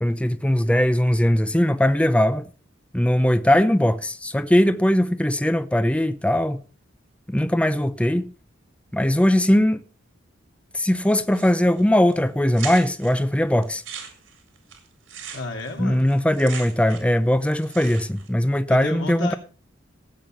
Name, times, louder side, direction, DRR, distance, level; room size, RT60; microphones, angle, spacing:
voice 1, 0.0-2.5 2.9-6.6 7.3-8.3 8.9-9.8 10.7-13.8 15.8-19.3, left 1 dB, 5° left, 0.5 m, -20 dB
sound 1, 11.3-11.8 12.1-12.2 12.5-13.1 13.6-17.2 17.4-18.3, right 7 dB, 80° right, 4.8 m, -38 dB
voice 2, 15.3-16.1 18.7-19.4, left 2 dB, 80° left, 3.1 m, -32 dB
17.0 x 8.6 x 5.2 m
head